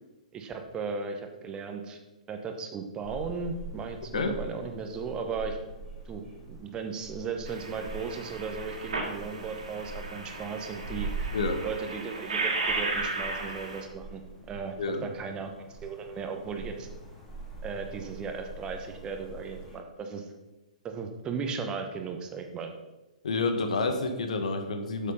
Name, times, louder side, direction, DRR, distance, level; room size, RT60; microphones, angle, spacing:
voice 1, 0.3-2.0 2.3-5.6 6.0-11.3 11.6-14.2 14.5-16.9 17.6-20.3 20.8-22.7, right 5 dB, 20° right, 5 dB, 1.1 m, -36 dB
sound 1, 3.0-19.8, right 3 dB, 10° left, 3.1 m, -43 dB
sound 2, 7.5-13.8, right 3 dB, 65° right, 2.3 m, -35 dB
voice 2, 23.2-25.1, left 3 dB, 60° left, 6 dB, 1.3 m, -29 dB
8.3 x 7.4 x 5.4 m, 1.0 s
figure-of-eight pair, 115°, 4 cm